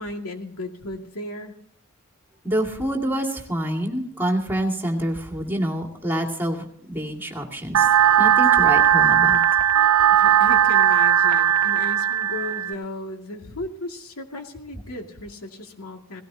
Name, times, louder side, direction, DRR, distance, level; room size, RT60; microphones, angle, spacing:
voice 1, 0.0-1.6 10.1-16.2, left 2 dB, 80° left, 3 dB, 2.3 m, -35 dB
voice 2, 2.4-7.9 8.2-9.4, right 1 dB, 10° right, 1 dB, 2.2 m, -27 dB
sound 1, 7.7-12.7, right 9 dB, 75° right, 0.5 m, -17 dB
18.5 x 17.5 x 2.8 m, 0.68 s
head